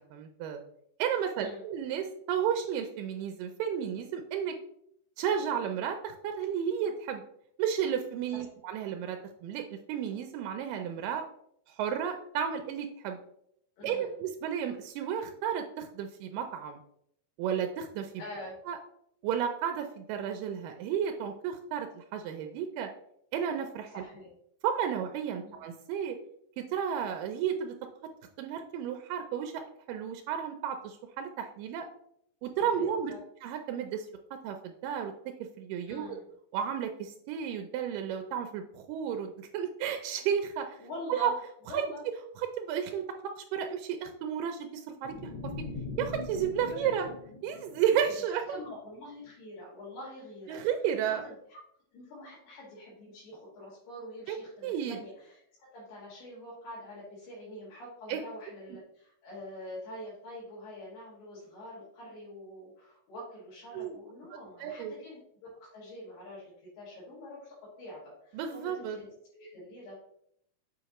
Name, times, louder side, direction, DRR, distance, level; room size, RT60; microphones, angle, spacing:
voice 1, 0.1-0.6 1.0-4.6 5.2-7.2 7.6-11.3 11.7-13.2 13.8-16.8 17.4-18.1 18.7-18.8 19.2-22.9 23.3-24.0 24.6-26.2 26.6-27.7 28.4-29.6 29.9-31.9 32.4-33.1 33.4-35.1 35.6-36.2 36.5-40.8 41.1-41.3 41.7-41.8 42.4-45.5 46.0-47.1 47.4-48.4 50.5-51.2 54.3-54.4 54.6-55.0 58.1-58.2 63.7-64.0 64.6-64.9 68.3-69.0, right 8 dB, 85° right, 5 dB, 1.9 m, -32 dB
voice 2, 13.8-14.2 18.2-18.6 23.9-24.3 25.4-25.5 32.6-33.2 35.9-36.2 40.8-41.3 41.7-42.0 46.6-47.1 48.5-50.6 51.0-51.6 51.9-70.0, left 1 dB, 85° left, -8 dB, 3.9 m, -45 dB
sound 1, 45.0-48.3, left 3 dB, 65° left, 1.8 m, -41 dB
7.3 x 4.9 x 2.9 m, 0.70 s
omnidirectional pair, 4.5 m